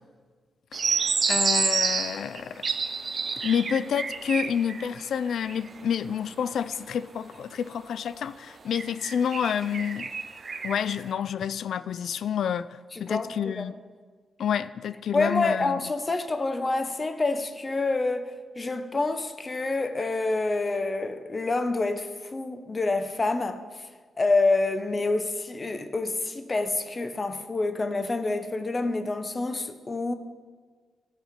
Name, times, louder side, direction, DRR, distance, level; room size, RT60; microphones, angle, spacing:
sound 1, 0.7-5.0 5.3-5.8 6.7-6.8 8.7-11.0, right 5 dB, 50° right, 0.6 m, -28 dB
voice 1, 0.9-2.6 3.4-10.1 10.6-12.7 13.0-13.7 14.4-15.8, left 8 dB, 75° left, 0.3 m, -29 dB
voice 2, 12.9-13.7 15.1-23.6 24.2-30.1, left 3 dB, 35° left, 0.8 m, -27 dB
12.5 x 5.6 x 5.1 m
cardioid pair, 65°, 0 cm